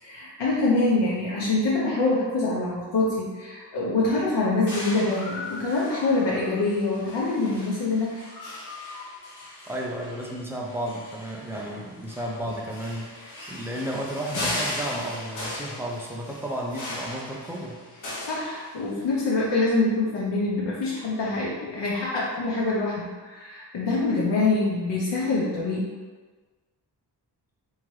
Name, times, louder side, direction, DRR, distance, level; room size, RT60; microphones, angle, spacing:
voice 1, 0.0-8.2 18.3-25.9, left 2 dB, 80° left, -7 dB, 0.8 m, -25 dB
sound 1, 4.7-19.1, left 1 dB, 45° left, 0.9 m, -37 dB
voice 2, 9.7-13.1 13.5-17.8, right 1 dB, 5° right, -2 dB, 0.4 m, -33 dB
3.7 x 2.9 x 3.1 m, 1.4 s
wide cardioid pair, 150°, 43 cm